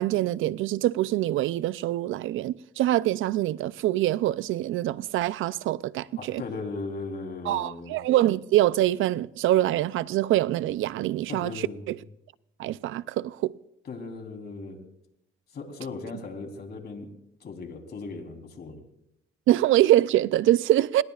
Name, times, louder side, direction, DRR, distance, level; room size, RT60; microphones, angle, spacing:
voice 1, 0.0-6.4 7.5-11.5 11.9-12.0 12.6-13.6 19.5-21.0, right 14 dB, 80° right, 0.5 m, -24 dB
voice 2, 6.2-8.0 11.3-11.9 13.9-14.8 15.5-17.1 17.4-18.8, left 3 dB, 55° left, 3.6 m, -37 dB
26.5 x 20.5 x 2.4 m
cardioid pair, 90°, 20 cm